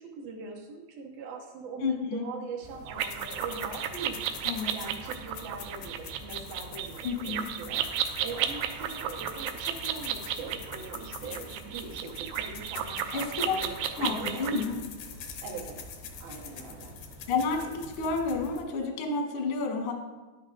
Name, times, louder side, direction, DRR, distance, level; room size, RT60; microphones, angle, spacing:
voice 1, 0.0-14.5 15.4-16.9, right 4 dB, 70° right, 0 dB, 2.6 m, -42 dB
voice 2, 1.8-2.2 4.4-4.7 7.0-7.5 13.1-13.5 14.0-14.8 17.3-19.9, left 4 dB, 75° left, 2 dB, 1.2 m, -30 dB
sound 1, 2.6-18.6, right 1 dB, 55° right, 1.6 m, -48 dB
sound 2, 2.9-14.7, right 10 dB, 85° right, 2.8 m, -33 dB
sound 3, 3.0-18.8, left 8 dB, 90° left, 1.8 m, -46 dB
11.0 x 8.5 x 3.9 m, 1.2 s
omnidirectional pair, 4.9 m